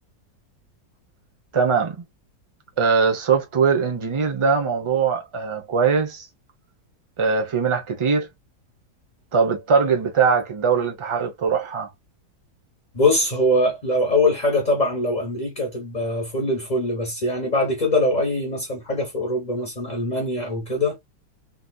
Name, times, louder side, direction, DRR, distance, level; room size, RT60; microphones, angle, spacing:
voice 1, 1.5-2.0 2.8-6.3 7.2-8.3 9.3-11.9, right 5 dB, 30° right, 0.6 m, -21 dB
voice 2, 12.9-21.0, left 1 dB, 30° left, 1.0 m, -22 dB
3.9 x 2.7 x 2.2 m
omnidirectional pair, 1.8 m